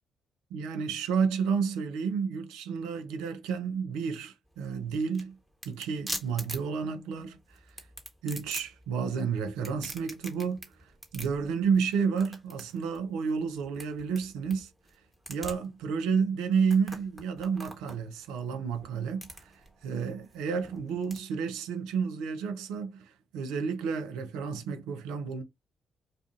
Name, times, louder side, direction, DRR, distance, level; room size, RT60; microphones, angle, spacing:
voice 1, 0.5-5.4 5.6-7.8 8.2-14.7 15.3-25.4, right 6 dB, 75° right, 0.4 m, -31 dB
sound 1, 4.5-21.2, right 1 dB, 10° right, 1.1 m, -45 dB
2.5 x 2.3 x 2.4 m
hypercardioid pair, 40°, 0 cm